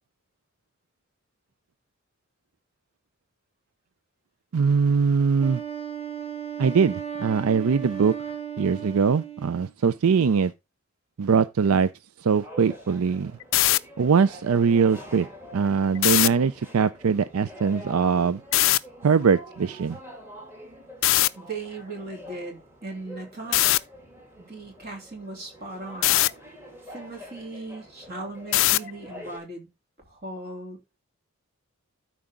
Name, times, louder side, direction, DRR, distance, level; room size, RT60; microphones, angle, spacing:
voice 1, 4.5-5.6 6.6-8.2 8.6-10.5 11.2-11.9 12.2-13.3 14.0-15.3 15.5-18.4 19.0-20.0, right 5 dB, 80° right, 0.4 m, -22 dB
Wind instrument woodwind instrument, 5.4-9.7, right 9 dB, 30° right, 2.2 m, -35 dB
sound 1, 12.4-29.4, equal, 10° right, 2.3 m, -45 dB
sound 2, 13.4-13.8 16.0-16.3 18.5-18.8 21.0-21.3 23.5-23.8 26.0-26.3 28.5-28.9, left 16 dB, 60° left, 0.4 m, -19 dB
voice 2, 21.3-23.6 24.4-26.2 26.9-29.7 30.0-31.0, right 2 dB, 45° right, 3.2 m, -38 dB
12.5 x 4.8 x 3.7 m
head